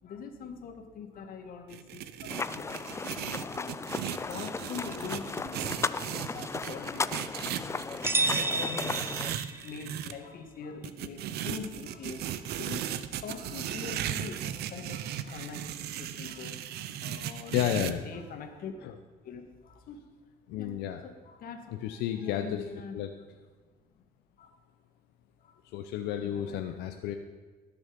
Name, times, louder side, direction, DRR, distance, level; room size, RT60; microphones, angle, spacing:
voice 1, 0.0-3.8 4.2-7.1 7.4-9.1 9.5-12.9 13.2-15.7 16.0-18.7 19.2-20.0 20.6-20.7 21.0-21.8 22.2-23.0 24.4-24.6 25.4-25.5 26.2-26.8, left 5 dB, 60° left, 5 dB, 1.8 m, -43 dB
sound 1, 1.7-10.1 10.8-17.9, right 11 dB, 75° right, 0.7 m, -37 dB
sound 2, 2.3-9.3, left 4 dB, 15° left, 0.4 m, -36 dB
sound 3, 8.0-9.9, right 2 dB, 15° right, 0.8 m, -30 dB
voice 2, 17.5-18.0 18.8-18.9 20.5-21.0 21.7-22.6 22.9-23.1 25.6-27.1, left 10 dB, 90° left, 6 dB, 0.7 m, -32 dB
19.0 x 7.0 x 5.2 m, 1.4 s
cardioid pair, 110°, 17 cm